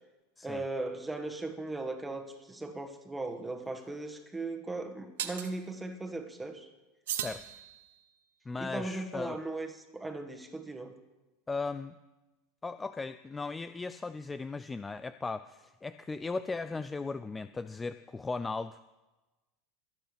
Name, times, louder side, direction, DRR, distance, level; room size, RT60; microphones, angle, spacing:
voice 1, 0.4-6.7 8.6-9.7 9.9-10.9, right 2 dB, 10° right, 4 dB, 1.7 m, -38 dB
sound 1, 3.2-3.3 5.2-5.5 7.1-8.2, right 10 dB, 85° right, 1.2 m, -38 dB
voice 2, 7.1-7.6 8.5-9.4 11.5-12.0 12.6-18.8, left 3 dB, 15° left, 13 dB, 0.4 m, -37 dB
22.5 x 9.0 x 3.5 m, 1.1 s
supercardioid pair, 115°, 0 cm